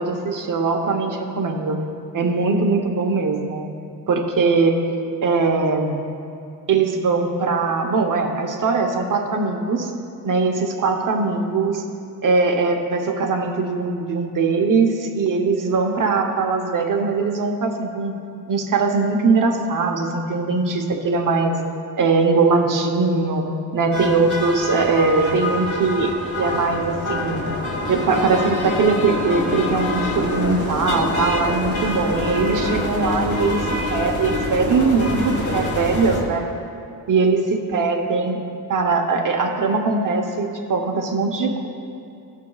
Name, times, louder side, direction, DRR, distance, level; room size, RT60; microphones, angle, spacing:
voice 1, 0.0-1.8 2.1-3.6 4.1-4.8 5.2-5.9 6.7-9.9 10.2-11.8 12.2-18.1 18.5-21.6 22.0-23.5 23.7-26.1 26.4-27.4 27.9-33.6 33.9-36.5 37.1-38.4 38.7-41.7, right 4 dB, 50° right, 3 dB, 1.0 m, -21 dB
sound 1, 23.9-36.2, left 1 dB, 45° left, 1.6 m, -26 dB
17.0 x 5.6 x 2.4 m, 2.5 s
cardioid pair, 110°, 40 cm